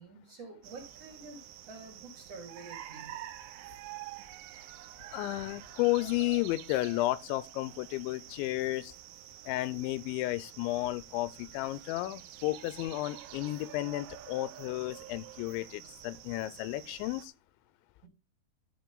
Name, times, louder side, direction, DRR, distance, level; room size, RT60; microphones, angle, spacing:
voice 1, 0.0-1.4 1.7-3.1 18.0-18.1, right 3 dB, 40° right, 3.3 m, -48 dB
sound 1, 0.6-17.3, right 13 dB, 85° right, 2.4 m, -48 dB
voice 2, 5.1-8.9 9.5-17.3, left 18 dB, 90° left, 3.0 m, -33 dB
13.0 x 5.1 x 3.9 m
omnidirectional pair, 5.2 m